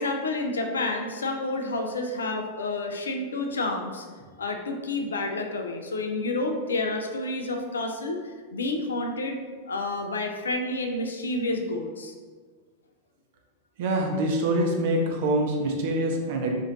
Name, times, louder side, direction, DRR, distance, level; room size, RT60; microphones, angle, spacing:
voice 1, 0.0-4.0 4.4-8.2 8.5-9.4 9.7-12.1, left 2 dB, 70° left, 4 dB, 0.4 m, -29 dB
voice 2, 13.8-16.6, right 1 dB, 50° right, 1 dB, 0.6 m, -25 dB
3.0 x 2.5 x 3.8 m, 1.5 s
figure-of-eight pair, 90°, 0 cm